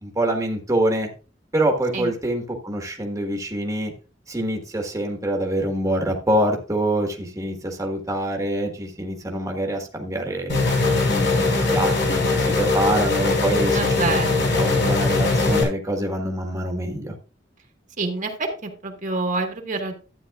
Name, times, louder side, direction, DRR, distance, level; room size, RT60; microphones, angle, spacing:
voice 1, 0.0-1.1 1.5-3.9 4.3-10.6 11.1-14.2 14.6-17.1, right 1 dB, 20° right, 1 dB, 1.5 m, -25 dB
sound 1, 10.5-15.6, left 3 dB, 70° left, 3.7 m, -21 dB
voice 2, 13.7-14.4 18.0-19.9, right 3 dB, 45° right, 3 dB, 1.5 m, -27 dB
12.5 x 9.2 x 2.4 m, 0.34 s
head